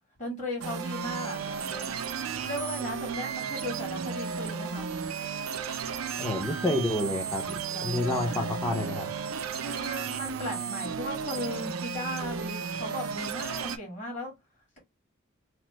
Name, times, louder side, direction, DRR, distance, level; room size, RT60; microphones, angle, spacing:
voice 1, 0.2-4.9 7.7-8.6 9.6-14.3, left 1 dB, 35° left, 1.6 m, -37 dB
sound 1, 0.6-13.8, right 6 dB, 75° right, 0.4 m, -34 dB
voice 2, 6.2-9.1, left 1 dB, 10° left, 0.5 m, -29 dB
2.9 x 2.0 x 3.1 m
head